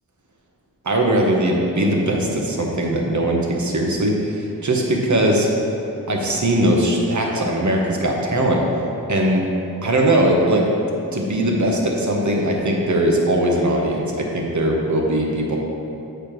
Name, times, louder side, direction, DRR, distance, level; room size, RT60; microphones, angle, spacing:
voice 1, 0.8-5.5 6.1-8.6 9.1-9.4 9.8-10.7 11.1-15.6, right 1 dB, 50° right, 0 dB, 1.1 m, -20 dB
8.2 x 4.9 x 3.1 m, 2.9 s
cardioid pair, 50°, 38 cm